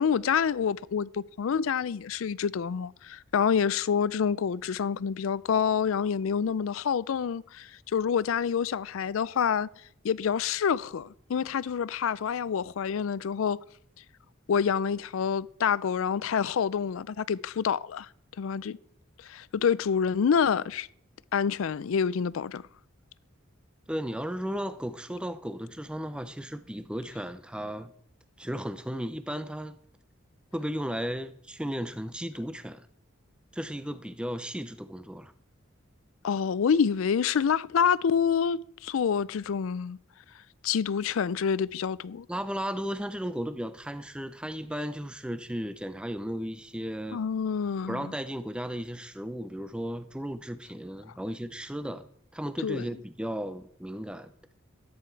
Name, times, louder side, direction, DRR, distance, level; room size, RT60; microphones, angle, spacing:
voice 1, 0.0-9.7 10.0-13.6 14.5-18.1 18.4-18.8 19.2-20.9 21.3-22.6 36.2-40.0 40.6-42.3 47.1-48.1 52.6-52.8, left 7 dB, 75° left, 0.4 m, -27 dB
voice 2, 23.9-27.9 28.4-29.8 30.5-32.9 33.5-35.3 42.3-47.2 47.9-52.1 52.3-54.3, equal, 5° right, 0.5 m, -35 dB
14.0 x 9.6 x 4.6 m
head